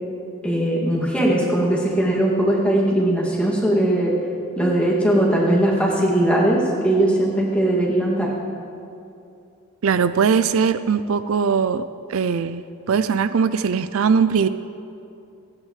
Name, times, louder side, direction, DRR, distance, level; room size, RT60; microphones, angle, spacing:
voice 1, 0.4-4.1 4.6-8.3, right 1 dB, 5° left, -5 dB, 2.4 m, -19 dB
voice 2, 9.8-11.8 12.1-12.6 12.9-14.5, right 6 dB, 75° right, 12 dB, 0.4 m, -20 dB
29.0 x 9.7 x 3.3 m, 2.6 s
head